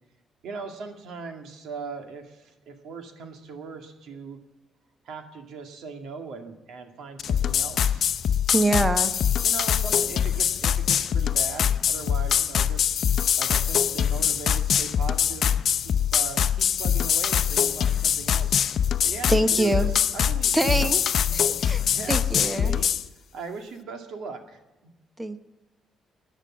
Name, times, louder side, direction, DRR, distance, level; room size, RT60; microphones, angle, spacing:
voice 1, 0.4-4.4 5.0-8.1 8.7-8.9 9.4-12.9 13.4-18.7 19.0-20.9 21.2-21.4 21.8-22.9 23.3-24.9, right 5 dB, 70° right, 5 dB, 2.2 m, -39 dB
sound 1, 7.2-23.0, left 8 dB, 55° left, 0.7 m, -23 dB
voice 2, 8.5-9.1 19.3-19.9 20.5-21.0 21.3-21.8 22.1-22.7 25.2-25.4, right 2 dB, 10° right, 10 dB, 1.0 m, -24 dB
18.5 x 10.0 x 7.4 m, 1.0 s
cardioid pair, 130°, 0 cm